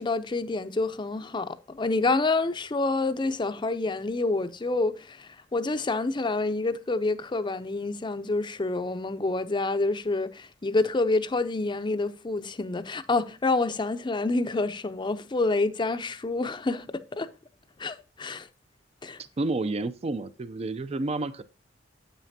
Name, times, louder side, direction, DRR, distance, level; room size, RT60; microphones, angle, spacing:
voice 1, 0.0-17.3 17.8-18.5 19.0-19.2, left 3 dB, 25° left, 0.5 m, -28 dB
voice 2, 19.2-21.4, right 2 dB, 35° right, 0.4 m, -30 dB
9.1 x 8.1 x 2.6 m
head